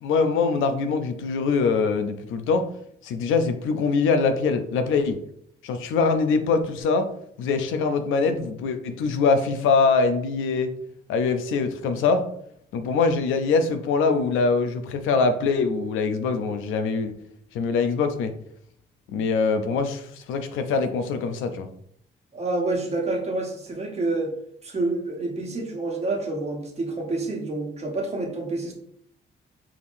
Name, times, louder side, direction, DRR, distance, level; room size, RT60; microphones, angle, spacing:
voice 1, 0.0-2.7 3.0-5.2 5.6-7.1 7.4-10.7 11.1-12.2 12.7-17.1 17.5-18.3 19.1-21.7, left 4 dB, 90° left, 8 dB, 0.6 m, -23 dB
voice 2, 22.3-24.3 24.6-28.7, right 2 dB, 35° right, 1 dB, 1.2 m, -28 dB
4.8 x 3.6 x 2.6 m, 0.68 s
cardioid pair, 90°, 20 cm